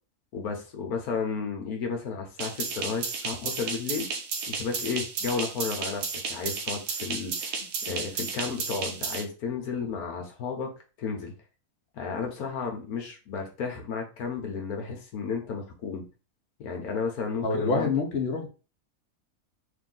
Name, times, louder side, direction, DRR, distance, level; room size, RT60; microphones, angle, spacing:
voice 1, 0.3-4.1 4.5-7.6 7.9-10.7 11.0-11.3 11.9-16.1 16.6-17.9, left 5 dB, 80° left, 3 dB, 1.3 m, -33 dB
sound 1, 2.4-9.2, right 5 dB, 85° right, 1.2 m, -33 dB
voice 2, 17.4-18.5, left 4 dB, 50° left, 1 dB, 1.1 m, -26 dB
3.6 x 2.6 x 3.7 m, 0.33 s
omnidirectional pair, 1.6 m